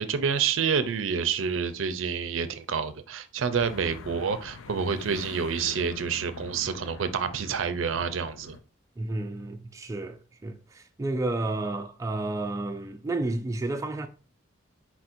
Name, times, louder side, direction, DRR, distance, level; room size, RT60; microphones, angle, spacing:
voice 1, 0.0-8.6, right 6 dB, 80° right, 0.5 m, -28 dB
sound 1, 3.5-8.6, left 5 dB, 85° left, 0.4 m, -44 dB
voice 2, 9.0-14.1, right 2 dB, 15° right, 0.3 m, -31 dB
4.3 x 4.2 x 2.5 m
head